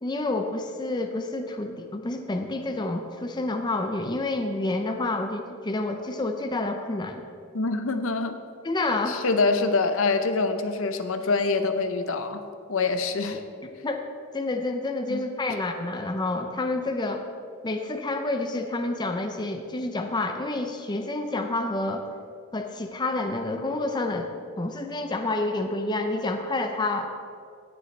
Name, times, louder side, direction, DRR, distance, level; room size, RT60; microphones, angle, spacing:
voice 1, 0.0-7.2 8.6-9.2 13.8-14.0 14.3-17.2 17.6-22.0 22.5-24.3 24.6-27.1, left 2 dB, 20° left, 5 dB, 0.5 m, -29 dB
voice 2, 7.5-8.4 9.1-12.4 12.7-13.4 15.1-15.2, left 3 dB, 65° left, 8 dB, 0.7 m, -25 dB
18.0 x 6.7 x 3.2 m, 2.3 s
head